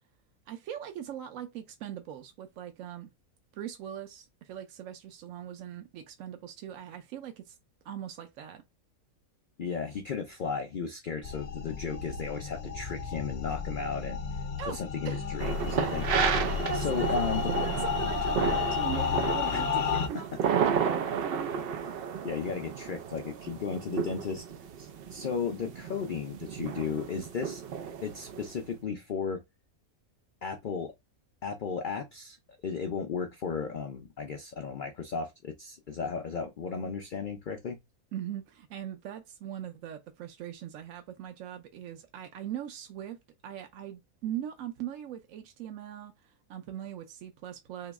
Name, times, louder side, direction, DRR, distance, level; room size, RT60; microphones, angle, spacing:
voice 1, 0.5-3.1 3.5-7.6 7.8-8.6 14.6-14.8 15.0-15.3 16.7-17.1 17.6-21.5 38.1-43.2 43.4-47.9, right 10 dB, 70° right, 0.9 m, -40 dB
voice 2, 9.6-14.2 14.7-16.1 16.7-17.4 19.5-19.7 22.2-24.4 24.8-27.6 28.0-29.4 30.4-30.9 31.4-32.4 32.6-37.8, left 6 dB, 90° left, 0.4 m, -35 dB
sound 1, 11.2-20.1, left 6 dB, 55° left, 0.8 m, -32 dB
sound 2, 15.4-28.6, right 7 dB, 90° right, 0.5 m, -32 dB
3.0 x 2.8 x 3.4 m
omnidirectional pair, 1.5 m